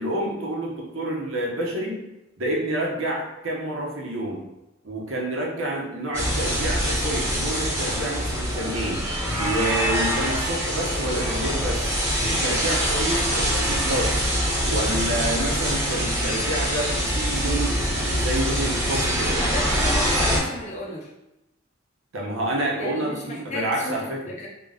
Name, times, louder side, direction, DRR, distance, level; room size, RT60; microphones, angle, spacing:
voice 1, 0.0-2.0 2.4-4.4 4.8-9.1 9.4-11.9 12.2-14.2 14.6-17.8 18.0-19.4 22.1-24.3, right 1 dB, 70° right, -2 dB, 1.0 m, -28 dB
sound 1, 6.1-20.4, equal, 15° right, 1.2 m, -24 dB
voice 2, 19.2-21.1 22.8-24.5, left 1 dB, 35° left, -3 dB, 0.6 m, -33 dB
3.8 x 3.0 x 3.5 m, 0.92 s
head